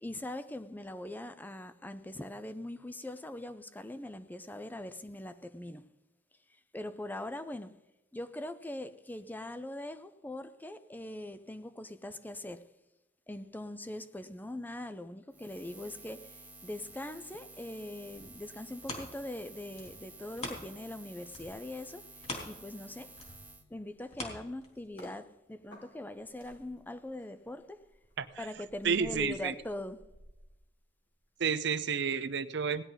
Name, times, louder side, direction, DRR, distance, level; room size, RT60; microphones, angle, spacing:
voice 1, 0.0-5.8 6.7-7.7 8.1-12.7 13.3-22.1 22.4-23.2 23.7-27.8 28.4-30.0, left 1 dB, 10° left, 0.5 m, -42 dB
Buzz, 15.3-23.6, right 2 dB, 10° right, 0.9 m, -52 dB
sound 1, 18.1-21.0 21.3-25.1 25.6-25.7, left 2 dB, 40° left, 3.2 m, -44 dB
sound 2, 23.9-25.2 25.7-31.3 31.6-31.9, equal, 80° left, 4.2 m, -56 dB
voice 2, 28.8-29.5 31.4-32.8, right 6 dB, 65° right, 0.7 m, -31 dB
18.0 x 10.5 x 4.0 m
head